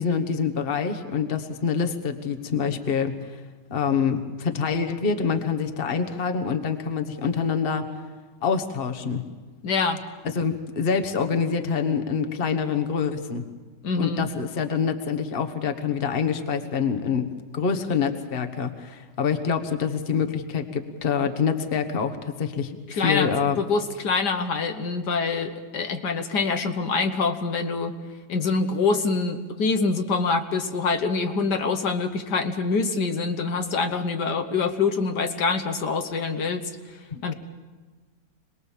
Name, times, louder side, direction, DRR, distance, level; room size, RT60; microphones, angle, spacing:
voice 1, 0.0-3.1 3.7-7.9 8.4-9.2 10.2-13.4 14.0-23.6 37.1-37.3, left 6 dB, 35° left, 6 dB, 1.4 m, -26 dB
voice 2, 9.6-10.0 13.8-14.3 23.0-23.3 23.6-27.9 28.3-36.7 37.2-37.3, left 4 dB, 70° left, 6 dB, 1.7 m, -25 dB
27.0 x 20.0 x 7.4 m, 1.4 s
omnidirectional pair, 1.9 m